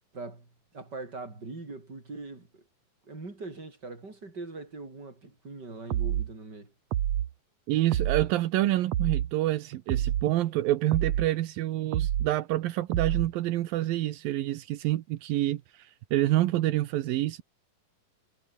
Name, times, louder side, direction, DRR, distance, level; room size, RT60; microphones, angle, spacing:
voice 1, 0.1-0.5 0.7-2.6 3.1-6.7, right 3 dB, 30° right, 6.1 m, -41 dB
sound 1, 5.9-6.3 6.9-7.3 7.9-8.3 8.9-9.3 9.9-10.3 10.9-11.3 11.9-12.3 12.9-13.3, right 11 dB, 60° right, 2.2 m, -27 dB
voice 2, 7.7-17.4, right 15 dB, 80° right, 2.8 m, -27 dB
omnidirectional pair, 4.0 m